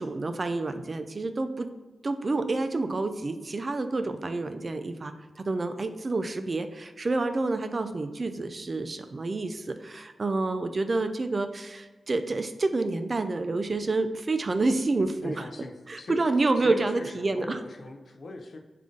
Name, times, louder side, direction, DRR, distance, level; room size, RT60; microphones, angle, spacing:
voice 1, 0.0-1.7 2.0-15.4 15.9-17.6, right 3 dB, 45° right, 9 dB, 0.3 m, -28 dB
voice 2, 15.2-16.2 16.6-18.6, left 2 dB, 65° left, 4 dB, 0.4 m, -40 dB
3.5 x 2.5 x 3.8 m, 1.3 s
cardioid pair, 55°, 0 cm